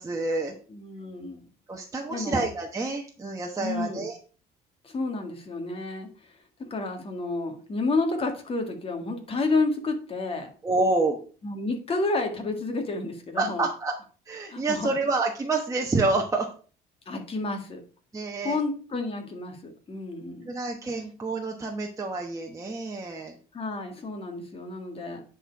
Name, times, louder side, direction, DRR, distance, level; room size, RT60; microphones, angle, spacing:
voice 1, 0.0-0.6 1.7-4.2 10.6-11.2 13.4-13.9 14.3-16.5 18.1-18.6 20.5-23.4, right 3 dB, 20° right, 0 dB, 1.1 m, -28 dB
voice 2, 0.7-1.4 2.1-2.4 3.6-4.1 4.8-6.1 6.6-10.5 11.4-13.6 14.5-14.9 17.1-17.8 18.4-20.5 23.5-25.2, left 3 dB, 35° left, 4 dB, 2.0 m, -30 dB
9.8 x 4.4 x 4.7 m, 0.38 s
cardioid pair, 110°, 17 cm